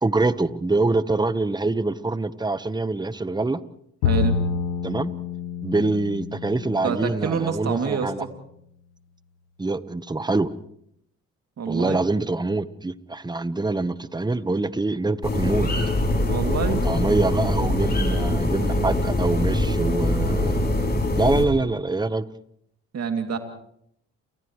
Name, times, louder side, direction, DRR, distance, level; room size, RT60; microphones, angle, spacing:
voice 1, 0.0-3.6 4.8-5.1 5.6-8.2 9.6-10.5 11.7-15.7 16.8-20.6 21.2-22.2, right 3 dB, 10° right, 14 dB, 1.2 m, -25 dB
Bowed string instrument, 4.0-7.4, left 6 dB, 85° left, 1.3 m, -27 dB
voice 2, 4.0-4.4 6.8-8.3 11.6-12.0 16.3-16.8 22.9-23.4, right 6 dB, 50° right, 5 dB, 2.8 m, -26 dB
sound 1, 15.2-21.5, left 1 dB, 30° left, 7.0 m, -23 dB
30.0 x 29.0 x 3.3 m, 0.72 s
hypercardioid pair, 55°, 34 cm